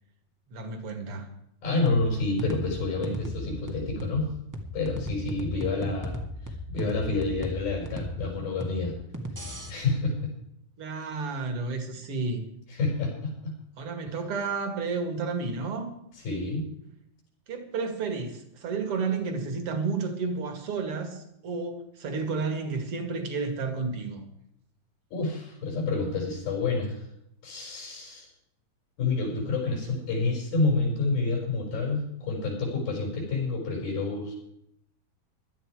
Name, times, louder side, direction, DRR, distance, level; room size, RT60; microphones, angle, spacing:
voice 1, 0.5-1.3 10.8-12.4 13.8-15.9 17.5-24.2, right 4 dB, 45° right, 6 dB, 2.7 m, -31 dB
voice 2, 1.6-4.3 4.7-6.2 6.5-9.0 9.7-10.1 12.7-13.5 16.2-16.7 25.1-27.1 27.4-28.3 29.0-34.3, left 3 dB, 85° left, -1 dB, 7.6 m, -28 dB
sound 1, 1.8-9.7, equal, 15° right, 0.6 m, -36 dB
17.5 x 12.0 x 4.9 m, 0.77 s
omnidirectional pair, 4.1 m